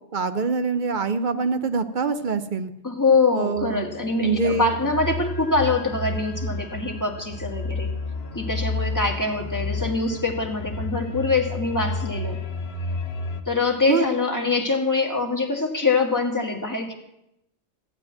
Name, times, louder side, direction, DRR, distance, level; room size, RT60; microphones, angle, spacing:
voice 1, 0.1-2.7 3.3-3.9 4.2-4.7 13.9-14.0, right 4 dB, 50° right, 10 dB, 0.7 m, -24 dB
voice 2, 2.8-7.9 8.3-12.4 13.5-16.9, left 3 dB, 15° left, 1 dB, 1.6 m, -24 dB
sound 1, 3.6-13.4, left 2 dB, 60° left, 1.1 m, -31 dB
14.5 x 5.3 x 9.4 m, 0.86 s
omnidirectional pair, 1.1 m